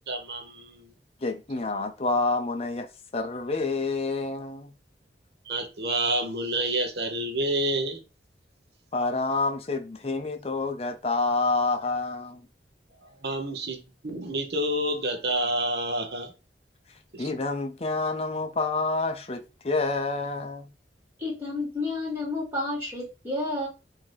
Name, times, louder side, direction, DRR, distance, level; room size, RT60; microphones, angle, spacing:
voice 1, 0.1-0.9 5.5-8.0 13.2-16.3 17.1-17.2, right 1 dB, 65° right, 0.8 m, -28 dB
voice 2, 1.2-4.7 8.9-12.5 17.2-20.7, left 3 dB, 35° left, 0.6 m, -28 dB
voice 3, 21.2-23.7, left 2 dB, 15° right, 2.3 m, -30 dB
3.8 x 2.8 x 3.2 m
head